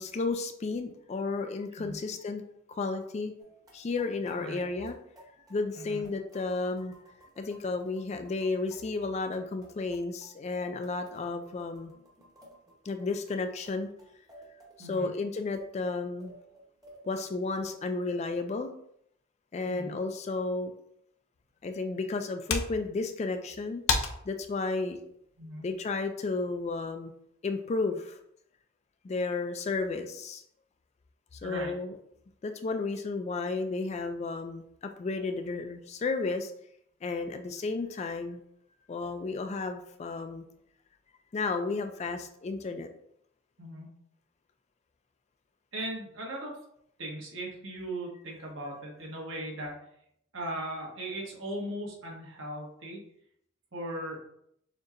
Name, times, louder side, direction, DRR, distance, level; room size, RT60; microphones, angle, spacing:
voice 1, 0.0-2.4 2.7-3.3 3.7-5.0 5.5-6.9 7.4-11.9 12.9-13.9 14.8-16.3 17.0-18.7 19.5-20.7 21.6-23.8 24.2-25.0 25.6-27.1 27.4-28.2 29.0-30.4 31.3-32.0 32.4-36.5 37.0-38.4 38.9-40.4 41.3-42.9, left 3 dB, 35° left, 7 dB, 0.3 m, -33 dB
sound 1, 3.4-17.7, right 1 dB, 20° right, 0.9 m, -57 dB
voice 2, 5.8-6.1 14.8-15.1 19.7-20.0 25.4-25.7 31.4-31.7 43.6-43.9 45.7-46.6 47.0-49.8 50.3-53.0 53.7-54.2, right 1 dB, 70° right, -2 dB, 1.3 m, -38 dB
sound 2, 21.3-26.4, left 5 dB, 85° left, 0.6 m, -36 dB
6.5 x 2.8 x 2.5 m, 0.72 s
head